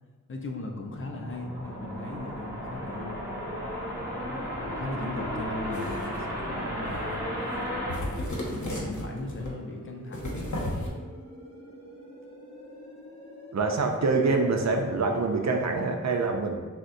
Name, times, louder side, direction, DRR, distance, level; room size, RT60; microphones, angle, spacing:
voice 1, 0.3-3.2 4.2-7.2 8.4-10.5, left 2 dB, 40° left, 1 dB, 0.5 m, -38 dB
sound 1, 0.8-15.7, equal, 15° left, 1.4 m, -47 dB
sound 2, 0.8-9.1, equal, 10° right, 1.5 m, -35 dB
sound 3, 5.7-6.2 6.8-7.2 7.5-7.6 7.9-9.5 10.1-10.9, left 1 dB, 70° left, 0.9 m, -34 dB
voice 2, 13.5-16.6, right 3 dB, 60° right, 3 dB, 0.5 m, -25 dB
6.2 x 2.1 x 2.6 m, 1.4 s
wide cardioid pair, 75°, 31 cm